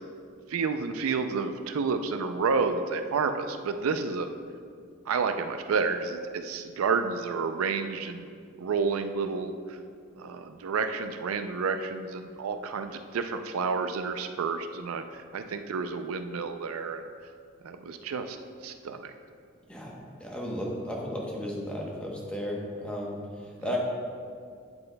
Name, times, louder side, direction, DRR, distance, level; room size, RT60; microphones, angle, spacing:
voice 1, 0.5-4.3 5.1-8.3 8.6-9.8 10.2-17.3 17.6-19.1 23.6-23.8, right 5 dB, 85° right, 7 dB, 0.4 m, -30 dB
voice 2, 19.7-23.2 23.6-23.8, left 1 dB, 5° left, -2 dB, 0.9 m, -34 dB
8.8 x 7.9 x 2.2 m, 2.2 s
head